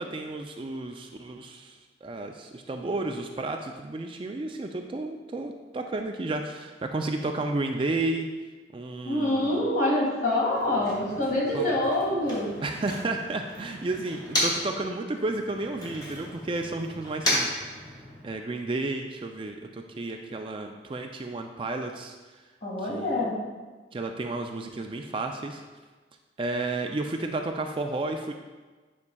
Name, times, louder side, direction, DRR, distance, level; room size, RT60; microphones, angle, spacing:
voice 1, 0.0-8.3 8.7-9.7 11.5-11.7 12.6-17.5 17.7-22.4 22.8-23.2 23.9-25.6 26.4-28.3, right 2 dB, 30° right, 4 dB, 0.3 m, -32 dB
voice 2, 9.1-12.5 22.6-23.4, left 1 dB, 50° left, -3 dB, 1.9 m, -26 dB
Motor vehicle (road), 10.4-14.8 15.1-18.4, left 1 dB, 20° left, 1.8 m, -34 dB
9.6 x 5.3 x 2.3 m, 1.3 s
head